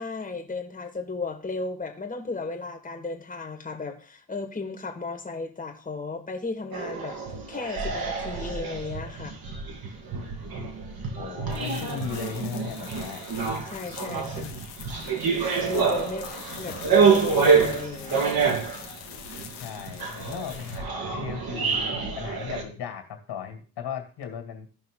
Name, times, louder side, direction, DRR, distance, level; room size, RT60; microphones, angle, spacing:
voice 1, 0.0-7.2 7.5-9.4 13.4-14.6 15.7-18.3, left 3 dB, 15° left, 3 dB, 1.8 m, -35 dB
sound 1, 6.7-22.6, right 5 dB, 50° right, 2.3 m, -27 dB
voice 2, 11.1-13.2 16.0-16.3 19.6-24.7, left 7 dB, 55° left, 5 dB, 2.4 m, -37 dB
sound 2, 11.5-20.8, left 8 dB, 75° left, 1.3 m, -43 dB
14.0 x 5.5 x 3.8 m, 0.39 s
hypercardioid pair, 50°, 48 cm